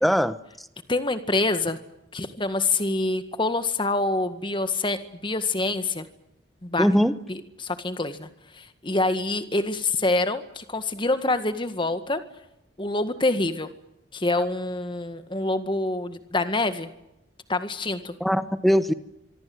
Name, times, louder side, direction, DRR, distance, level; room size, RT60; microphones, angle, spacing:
voice 1, 0.0-0.7 6.8-7.2 18.2-18.9, equal, ahead, 1.0 m, -21 dB
voice 2, 0.9-1.8 2.1-6.1 6.6-6.9 7.3-8.3 8.6-12.2 12.8-13.7 14.1-16.9 17.5-18.1, left 2 dB, 30° left, 1.8 m, -26 dB
25.0 x 24.0 x 7.9 m
head